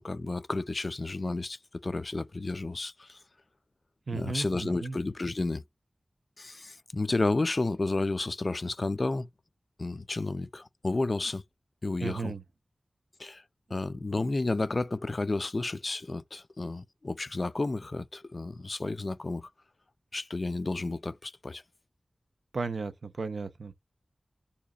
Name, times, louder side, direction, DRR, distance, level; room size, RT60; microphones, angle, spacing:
voice 1, 0.0-3.2 4.1-5.6 6.4-9.3 9.8-11.4 11.8-12.3 13.2-13.4 13.7-19.5 20.1-21.6, left 2 dB, 50° left, 0.3 m, -31 dB
voice 2, 4.1-5.0 12.0-12.4 22.5-23.7, right 4 dB, 85° right, 0.5 m, -35 dB
3.9 x 2.8 x 2.3 m
wide cardioid pair, 70°, 0 cm